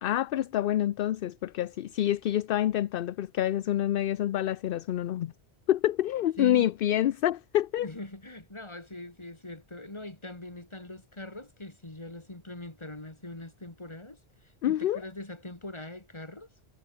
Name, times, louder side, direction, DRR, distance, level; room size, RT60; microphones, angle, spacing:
voice 1, 0.0-5.3 5.7-7.9 14.6-15.0, left 12 dB, 65° left, 0.7 m, -27 dB
voice 2, 6.4-6.7 7.8-16.5, left 2 dB, 25° left, 2.7 m, -42 dB
omnidirectional pair, 1.1 m